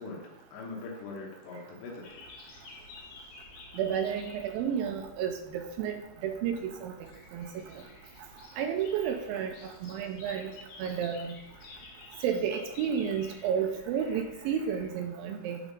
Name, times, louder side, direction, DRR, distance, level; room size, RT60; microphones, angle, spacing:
voice 1, 0.0-2.2, left 3 dB, 90° left, -1 dB, 3.2 m, -42 dB
sound 1, 2.0-14.9, left 3 dB, 65° left, 2.4 m, -51 dB
voice 2, 3.8-6.0 6.2-6.9 7.3-7.6 8.6-9.5 9.8-10.5 10.8-11.3 12.2-15.6, right 8 dB, 80° right, 4 dB, 2.2 m, -31 dB
9.7 x 4.0 x 5.2 m, 0.96 s
omnidirectional pair, 4.6 m